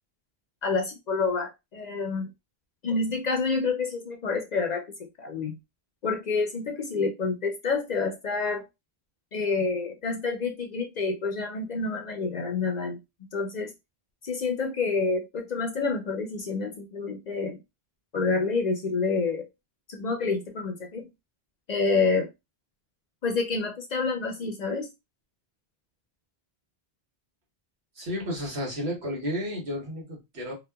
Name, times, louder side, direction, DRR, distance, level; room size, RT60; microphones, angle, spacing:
voice 1, 0.6-2.3 2.8-5.6 6.0-8.6 9.3-13.0 13.3-13.7 14.2-17.6 18.1-19.5 19.9-21.1 21.7-22.3 23.2-24.9, left 4 dB, 55° left, 0.5 m, -28 dB
voice 2, 27.9-30.5, equal, 85° right, 1.3 m, -32 dB
2.8 x 2.2 x 2.2 m
omnidirectional pair, 1.1 m